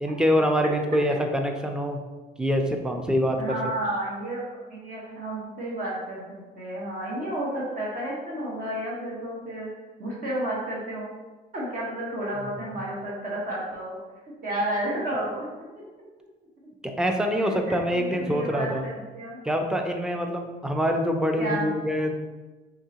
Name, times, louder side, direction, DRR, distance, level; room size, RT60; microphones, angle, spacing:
voice 1, 0.0-2.0 2.4-3.6 16.8-18.9 19.4-22.1, equal, 5° right, 3 dB, 0.4 m, -25 dB
voice 2, 3.4-9.7 10.0-11.1 11.5-14.0 14.4-15.5 17.9-19.4 21.4-21.7, right 1 dB, 55° right, -5 dB, 1.2 m, -31 dB
4.6 x 3.0 x 2.8 m, 1.2 s
cardioid pair, 110°, 17 cm